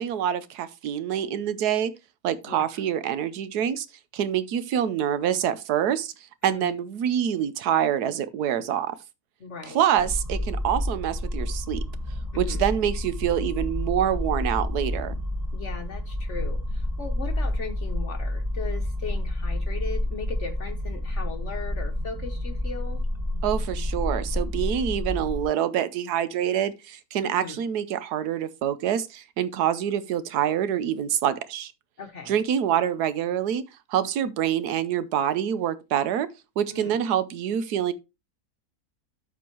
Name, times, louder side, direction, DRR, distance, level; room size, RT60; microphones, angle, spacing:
voice 1, 0.0-1.9 2.2-3.9 4.1-6.1 6.4-8.9 9.7-11.8 12.4-15.1 23.4-31.7 32.3-33.6 33.9-36.3 36.6-37.9, right 10 dB, 85° right, 1.3 m, -26 dB
voice 2, 6.4-6.8 9.4-9.8 12.3-12.7 15.5-23.1 27.2-27.6 32.0-32.4 36.7-37.0, left 5 dB, 55° left, 1.1 m, -38 dB
sound 1, 10.0-25.5, left 1 dB, 25° right, 1.7 m, -29 dB
13.0 x 4.4 x 3.0 m
omnidirectional pair, 1.6 m